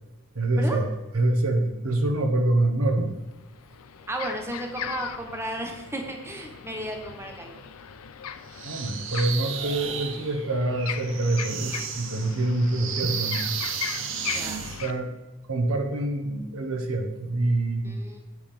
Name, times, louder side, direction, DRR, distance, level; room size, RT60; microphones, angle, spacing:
voice 1, 0.3-0.9 1.1-3.1 8.6-13.5 14.8-15.1 15.5-18.0, right 2 dB, 90° right, 5 dB, 1.2 m, -25 dB
sound 1, 2.8-2.9 3.3-14.9, left 9 dB, 90° left, 0.5 m, -39 dB
voice 2, 4.1-7.6 14.3-14.6 17.8-18.2, right 1 dB, 10° right, 2 dB, 0.9 m, -34 dB
sound 2, 8.5-14.9, right 8 dB, 60° right, 0.7 m, -34 dB
8.3 x 5.4 x 5.0 m, 1.1 s
head